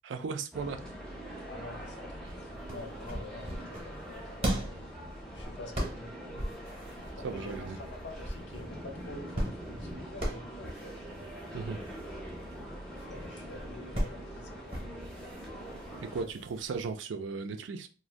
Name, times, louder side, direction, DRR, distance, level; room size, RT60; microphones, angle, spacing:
voice 1, 0.0-0.8 7.2-7.8 11.5-11.8 16.0-17.9, right 4 dB, 85° right, 0.4 m, -36 dB
sound 1, 0.5-16.2, equal, 5° left, 0.5 m, -43 dB
voice 2, 1.5-4.8 5.3-6.3 7.2-11.2 13.0-15.5, left 2 dB, 75° left, 0.6 m, -47 dB
sound 2, 2.3-16.9, right 1 dB, 30° right, 0.7 m, -39 dB
2.5 x 2.1 x 3.2 m
head